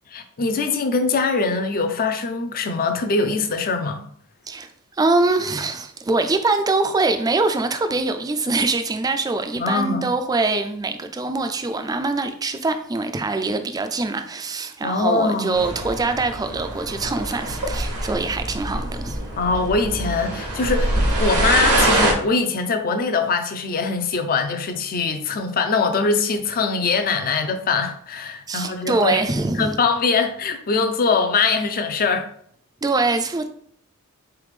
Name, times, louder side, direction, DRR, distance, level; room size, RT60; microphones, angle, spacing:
voice 1, 0.1-4.0 9.6-10.1 14.8-15.6 19.3-29.2 29.5-32.3, left 4 dB, 40° left, 0.5 m, -22 dB
voice 2, 4.5-19.2 28.5-29.7 32.8-33.5, right 3 dB, 15° right, 0.3 m, -23 dB
sound 1, 15.5-22.1, right 1 dB, 90° right, 1.0 m, -24 dB
3.9 x 3.4 x 3.2 m
head